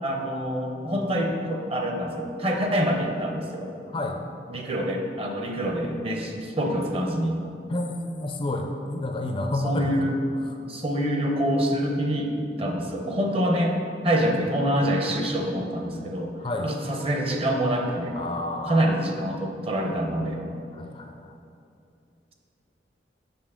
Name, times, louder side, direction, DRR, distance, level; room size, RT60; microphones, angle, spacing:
voice 1, 0.0-3.7 4.5-7.4 9.6-10.1 10.7-13.8 14.0-16.3 16.6-18.2 18.7-20.4, equal, 35° right, 1 dB, 0.7 m, -26 dB
voice 2, 7.7-10.1 10.4-10.5 16.4-16.7 18.1-18.9 20.7-21.2, left 1 dB, 30° left, 3 dB, 0.4 m, -29 dB
7.0 x 5.8 x 3.7 m, 2.6 s
head